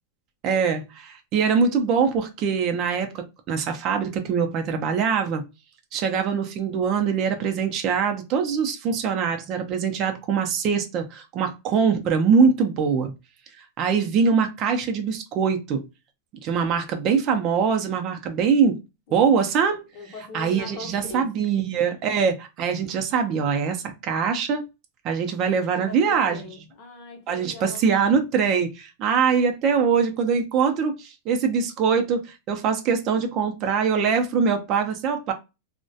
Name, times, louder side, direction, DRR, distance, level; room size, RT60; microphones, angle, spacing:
voice 1, 0.4-5.4 5.9-13.1 13.6-15.8 16.4-18.8 19.1-19.8 20.3-24.6 25.0-26.5 27.3-35.3, right 6 dB, 35° right, 0.4 m, -23 dB
voice 2, 19.9-21.3 25.7-27.9, left 3 dB, 45° left, 0.7 m, -40 dB
2.3 x 2.1 x 2.6 m
supercardioid pair, 145°, 0 cm